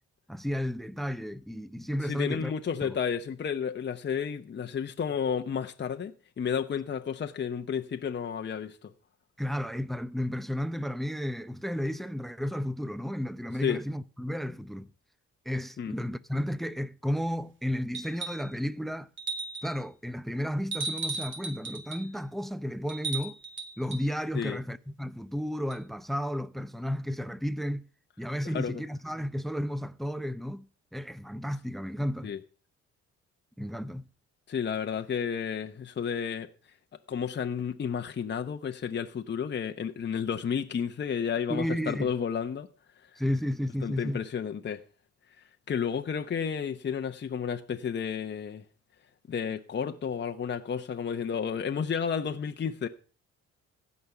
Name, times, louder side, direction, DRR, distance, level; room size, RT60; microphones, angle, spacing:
voice 1, 0.3-2.5 2.8-3.0 9.4-14.9 15.5-19.1 19.6-23.4 23.8-27.9 28.2-30.7 30.9-32.3 33.6-34.1 41.5-42.1 43.2-44.2, equal, ahead, 0.6 m, -33 dB
voice 2, 2.0-8.9 13.6-13.8 15.8-15.9 24.3-24.6 28.4-28.8 32.2-32.4 34.5-36.5 37.1-42.7 43.8-44.8 45.7-48.6 49.3-52.9, left 7 dB, 35° left, 0.9 m, -32 dB
sound 1, 17.9-18.5 19.2-19.8 20.7-22.1 22.9-24.1 25.7-25.8, right 3 dB, 40° right, 2.2 m, -36 dB
16.0 x 5.4 x 7.0 m
cardioid pair, 90°, 30 cm